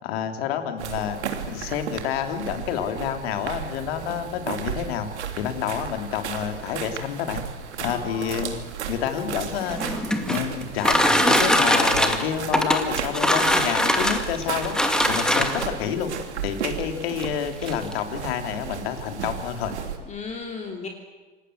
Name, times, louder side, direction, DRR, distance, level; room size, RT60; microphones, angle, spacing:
voice 1, 0.0-1.2 1.4-5.1 5.4-7.4 7.8-8.6 8.9-9.8 10.3-14.7 15.1-16.1 16.4-19.7, left 9 dB, 60° left, 6 dB, 3.3 m, -28 dB
sound 1, 0.8-20.0, right 8 dB, 80° right, 3.2 m, -34 dB
voice 2, 7.8-8.6 20.1-20.9, left 4 dB, 20° left, 2 dB, 3.2 m, -36 dB
sound 2, 9.6-15.8 16.7-16.8 17.2-17.3 17.6-18.0, equal, ahead, 2.4 m, -22 dB
27.0 x 19.5 x 8.0 m, 1.2 s
hypercardioid pair, 110°, 34 cm